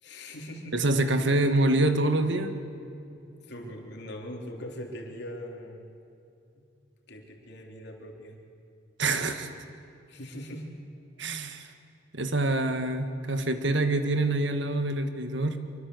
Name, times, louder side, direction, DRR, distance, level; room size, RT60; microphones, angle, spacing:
voice 1, 0.0-0.8 3.4-6.0 6.5-6.7 7.1-8.4 10.1-10.7, equal, 65° left, 2 dB, 3.6 m, -41 dB
voice 2, 0.7-2.5 9.0-9.5 11.2-11.7 12.1-15.6, right 2 dB, 70° right, 8 dB, 1.8 m, -26 dB
24.5 x 24.5 x 8.1 m, 2.6 s
head